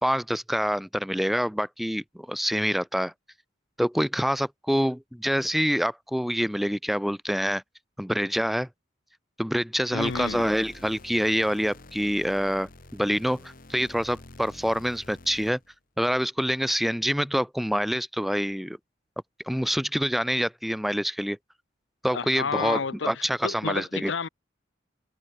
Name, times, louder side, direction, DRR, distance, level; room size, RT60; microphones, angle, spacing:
voice 1, 0.0-3.1 3.8-7.6 8.0-8.7 9.4-15.6 16.0-18.8 19.5-21.4 22.0-24.1, equal, ahead, 0.5 m, -26 dB
voice 2, 9.9-10.5 22.1-24.3, left 5 dB, 70° left, 0.8 m, -31 dB
sound 1, 10.0-15.7, left 2 dB, 45° left, 1.8 m, -48 dB
head